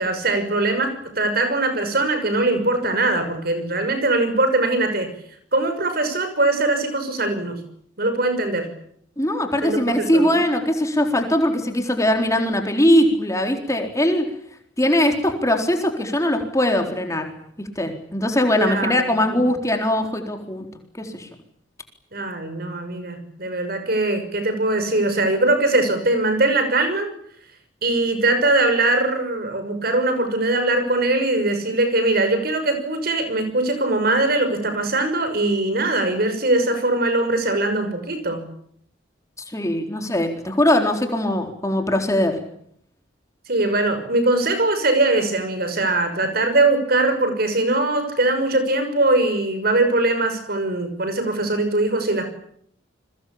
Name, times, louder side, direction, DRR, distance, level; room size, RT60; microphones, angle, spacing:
voice 1, 0.0-5.1 5.5-7.6 8.0-8.7 9.6-10.4 18.6-19.4 22.1-27.1 27.8-38.4 43.5-52.3, right 2 dB, 50° right, 8 dB, 6.2 m, -21 dB
voice 2, 9.2-14.2 14.8-17.3 17.8-20.7 21.0-21.3 39.5-42.4, left 1 dB, 15° left, 4 dB, 4.0 m, -21 dB
29.5 x 23.0 x 8.7 m, 0.68 s
head